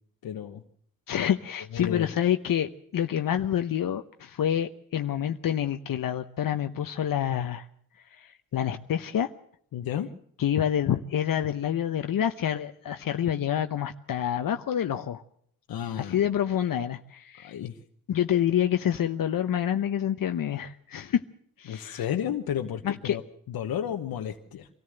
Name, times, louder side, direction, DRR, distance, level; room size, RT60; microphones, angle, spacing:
voice 1, 0.2-0.6 1.7-2.1 9.7-10.1 15.7-16.3 17.4-17.8 21.7-23.2 23.5-24.7, left 9 dB, 90° left, 4 dB, 1.1 m, -32 dB
voice 2, 1.1-7.7 8.1-9.3 10.4-15.2 16.0-17.6 18.1-21.2 21.6-22.1 22.8-23.2, left 10 dB, 70° left, 7 dB, 0.9 m, -27 dB
24.0 x 14.5 x 7.9 m, 0.67 s
cardioid pair, 65°, 35 cm